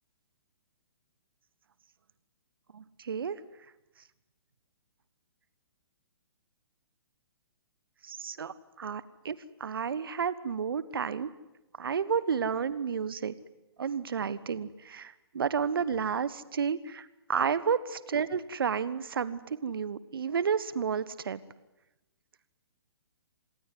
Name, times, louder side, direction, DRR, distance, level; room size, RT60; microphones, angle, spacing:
voice 1, 2.7-3.4 8.0-11.3 11.8-13.3 13.8-21.4, right 6 dB, 60° right, 16 dB, 1.4 m, -31 dB
26.5 x 19.5 x 9.5 m, 1.0 s
figure-of-eight pair, 120°, 14 cm